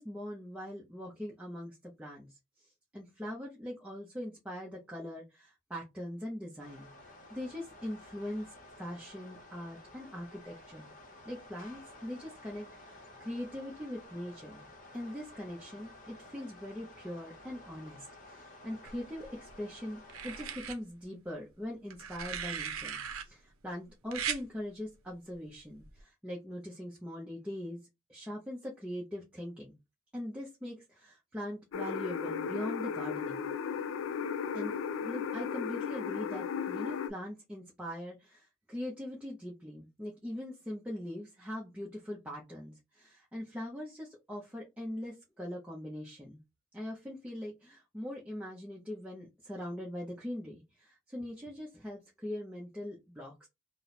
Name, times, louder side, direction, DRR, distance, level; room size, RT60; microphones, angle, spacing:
voice 1, 0.0-8.5 8.8-10.9 11.3-14.7 14.9-27.8 28.1-29.8 30.1-33.5 34.5-34.7 35.0-46.4 46.7-53.5, left 1 dB, 5° right, -4 dB, 0.6 m, -42 dB
sound 1, 6.6-20.6, left 2 dB, 40° left, 0.7 m, -53 dB
sound 2, 18.9-19.5 20.1-20.8 21.9-23.2 24.1-24.4 25.8-26.0, right 7 dB, 85° right, 0.6 m, -38 dB
sound 3, 31.7-37.1, left 6 dB, 70° left, 0.3 m, -35 dB
2.8 x 2.0 x 4.0 m, 0.23 s
head